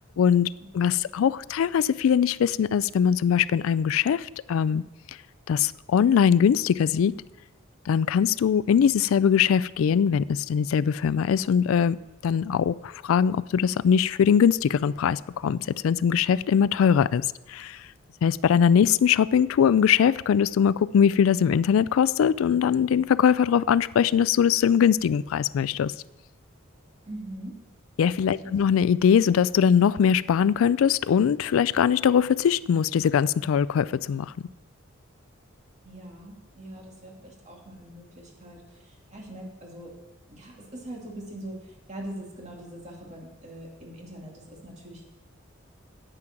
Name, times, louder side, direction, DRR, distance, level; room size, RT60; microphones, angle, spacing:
voice 1, 0.2-4.8 5.5-7.1 7.9-12.0 12.2-17.8 18.2-25.9 28.0-34.3, left 7 dB, 85° left, 19 dB, 0.3 m, -21 dB
voice 2, 27.1-27.6 28.4-28.7 35.8-40.0 40.3-45.1, right 1 dB, 35° right, -1 dB, 2.5 m, -42 dB
9.9 x 9.0 x 5.9 m, 1.0 s
head